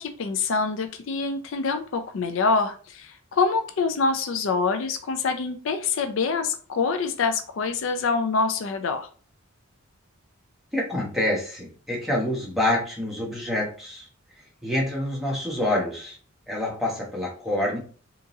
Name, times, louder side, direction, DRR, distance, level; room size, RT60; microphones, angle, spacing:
voice 1, 0.0-9.1, left 4 dB, 65° left, 8 dB, 0.4 m, -25 dB
voice 2, 10.7-14.1 14.6-16.2 16.5-17.8, left 1 dB, ahead, -4 dB, 1.0 m, -27 dB
3.7 x 2.9 x 2.6 m, 0.40 s
head